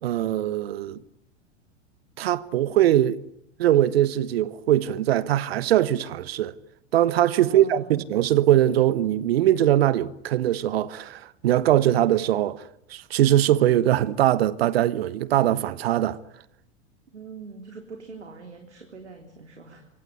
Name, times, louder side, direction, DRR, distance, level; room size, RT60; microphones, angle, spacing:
voice 1, 0.0-1.0 2.2-3.2 3.6-6.6 6.9-12.6 12.9-16.2, right 12 dB, 60° right, 1.3 m, -21 dB
voice 2, 7.2-8.0 17.1-19.9, right 4 dB, 80° right, 3.8 m, -43 dB
25.5 x 24.0 x 9.6 m
figure-of-eight pair, 90°, 34 cm